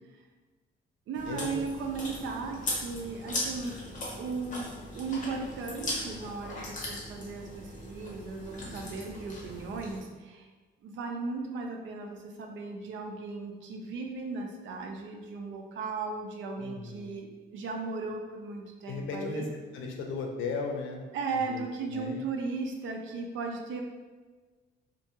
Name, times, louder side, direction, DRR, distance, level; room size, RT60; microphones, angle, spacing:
Chewing mastication, 1.1-10.0, left 1 dB, 40° left, 0.9 m, -39 dB
voice 1, 1.1-3.8 4.1-10.5 10.8-19.5 21.1-23.8, right 4 dB, 75° right, 2 dB, 0.5 m, -36 dB
voice 2, 16.6-17.1 18.9-21.0 21.5-21.6 21.9-22.2, left 4 dB, 75° left, 2 dB, 0.5 m, -36 dB
2.6 x 2.6 x 2.6 m, 1.3 s
cardioid pair, 90°, 20 cm